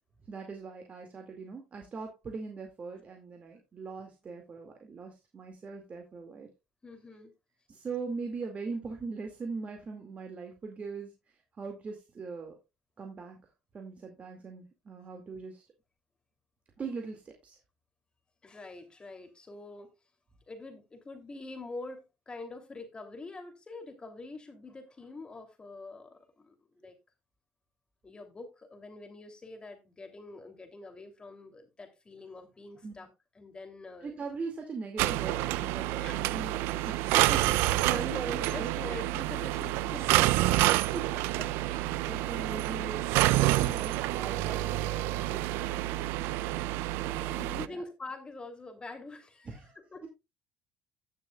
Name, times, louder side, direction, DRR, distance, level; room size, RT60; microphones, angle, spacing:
voice 1, 0.3-6.5 7.7-12.6 13.0-13.4 13.7-15.6 16.8-17.6 32.8-32.9 34.0-36.5 36.9-39.0 40.9-41.2 41.6-43.0 43.3-45.7 47.0-47.8 49.5-50.1, right 4 dB, 35° right, 3 dB, 2.2 m, -41 dB
voice 2, 6.8-7.3 18.4-19.9 20.5-26.9 28.0-33.1 33.3-34.1 36.0-36.6 37.7-40.7 41.4-42.3 45.4-46.1 47.3-49.6 49.9-50.1, left 3 dB, 25° left, 6 dB, 2.9 m, -45 dB
sound 1, 35.0-47.7, right 16 dB, 80° right, 0.4 m, -28 dB
17.5 x 6.7 x 2.3 m, 0.24 s
supercardioid pair, 85°, 4 cm